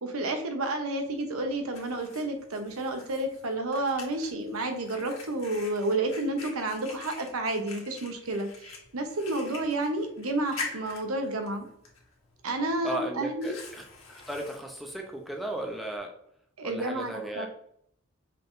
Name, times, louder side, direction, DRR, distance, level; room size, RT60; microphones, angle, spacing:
voice 1, 0.0-11.7 12.4-13.6 16.6-17.5, right 2 dB, 85° right, 5 dB, 0.9 m, -30 dB
Fire, 1.0-16.0, left 4 dB, 75° left, 1.3 m, -46 dB
voice 2, 12.8-13.8 14.1-16.1 16.6-17.5, right 1 dB, ahead, 1 dB, 0.6 m, -35 dB
5.6 x 3.7 x 2.6 m, 0.70 s
head